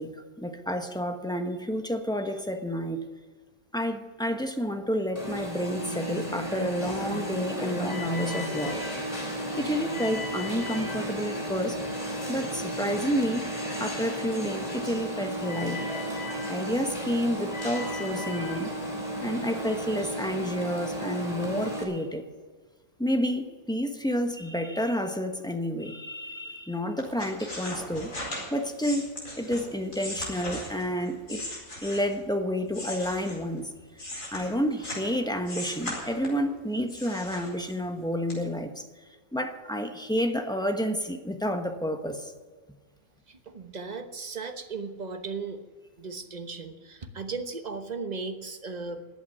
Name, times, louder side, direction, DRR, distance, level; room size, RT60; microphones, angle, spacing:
voice 1, 0.0-3.1 3.7-8.8 9.5-11.8 12.3-13.4 13.8-15.8 16.5-18.7 19.2-22.2 23.0-28.1 28.5-31.4 31.8-33.7 34.3-38.8 39.3-42.3, equal, 5° left, 5 dB, 1.0 m, -30 dB
Alarm, 5.2-21.8, equal, 25° left, 3.2 m, -33 dB
sound 1, 27.0-32.3 32.7-35.1 35.4-36.5 36.9-37.9 38.3-38.4, left 1 dB, 65° left, 5.0 m, -38 dB
voice 2, 43.3-45.6 46.0-49.0, right 4 dB, 30° right, 7 dB, 1.1 m, -36 dB
14.0 x 8.4 x 10.0 m, 1.4 s
omnidirectional pair, 1.5 m